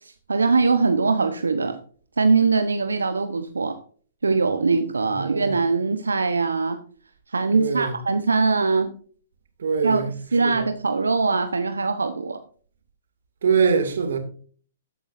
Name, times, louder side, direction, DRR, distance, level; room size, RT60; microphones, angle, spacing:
voice 1, 0.3-1.8 2.2-3.8 4.2-6.8 7.3-8.9 9.8-10.0 10.3-12.4, right 4 dB, 80° right, 1.1 m, -22 dB
voice 2, 5.1-5.6 7.5-8.0 9.6-10.1 10.4-10.7 13.4-14.2, right 6 dB, 65° right, 2.6 m, -23 dB
13.5 x 10.0 x 2.7 m
figure-of-eight pair, 120°, 0 cm